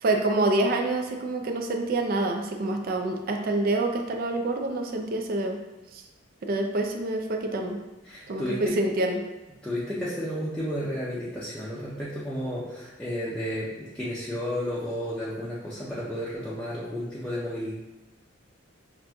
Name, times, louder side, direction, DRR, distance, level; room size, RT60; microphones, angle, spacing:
voice 1, 0.0-5.6 5.9-6.0 6.4-7.8 8.3-9.2, right 2 dB, 50° right, 4 dB, 0.4 m, -27 dB
voice 2, 8.0-8.8 9.6-17.7, equal, 5° left, -9 dB, 0.5 m, -32 dB
5.9 x 2.5 x 2.3 m, 1.1 s
head